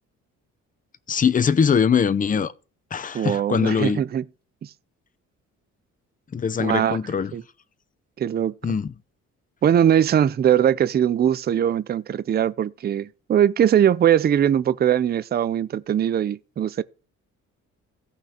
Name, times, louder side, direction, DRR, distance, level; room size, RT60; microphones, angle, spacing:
voice 1, 1.1-2.5 2.9-4.0 6.3-7.3 8.6-8.9, left 6 dB, 25° left, 0.6 m, -22 dB
voice 2, 3.1-4.2 6.6-7.0 7.3-7.4 8.2-8.5 9.6-16.8, right 9 dB, 35° right, 0.4 m, -21 dB
16.5 x 5.9 x 2.8 m
cardioid pair, 90°, 30 cm